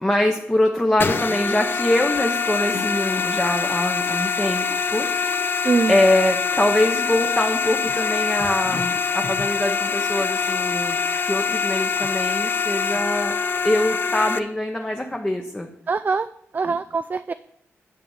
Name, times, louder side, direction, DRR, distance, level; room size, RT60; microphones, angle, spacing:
voice 1, 0.0-5.1 5.9-13.3 13.6-15.7, left 1 dB, 15° left, 2 dB, 1.0 m, -23 dB
sound 1, 1.0-14.4, left 5 dB, 45° left, 0.6 m, -24 dB
voice 2, 5.6-6.0 15.9-16.3 16.5-17.3, right 4 dB, 40° right, 11 dB, 0.4 m, -22 dB
10.0 x 5.4 x 7.1 m, 0.72 s
cardioid pair, 90°, 5 cm